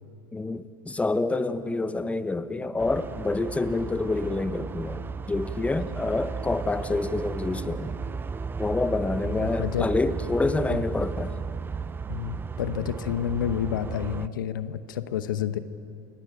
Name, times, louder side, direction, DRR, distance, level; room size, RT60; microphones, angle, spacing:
voice 1, 0.3-8.0 8.6-11.3, left 3 dB, 10° left, 12 dB, 1.2 m, -27 dB
sound 1, 2.8-14.3, right 5 dB, 20° right, 0.6 m, -34 dB
voice 2, 9.4-9.9 10.7-10.8 12.1-15.6, left 10 dB, 75° left, 12 dB, 1.0 m, -29 dB
29.5 x 17.0 x 8.9 m, 2.6 s
hypercardioid pair, 80°, 11 cm